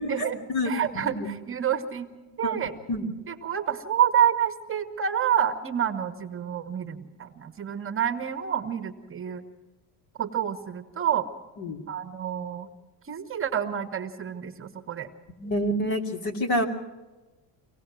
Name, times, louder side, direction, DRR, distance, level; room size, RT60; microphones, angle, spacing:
voice 1, 0.0-1.3 2.4-2.5 2.9-3.1 11.6-11.8 15.4-16.7, equal, 50° left, 5 dB, 2.7 m, -28 dB
voice 2, 0.6-2.1 2.4-2.7 3.3-9.4 10.2-11.3 11.9-12.7 13.0-15.1, right 9 dB, 25° right, 8 dB, 1.1 m, -28 dB
24.5 x 18.5 x 6.2 m, 1.2 s
cardioid pair, 135°, 48 cm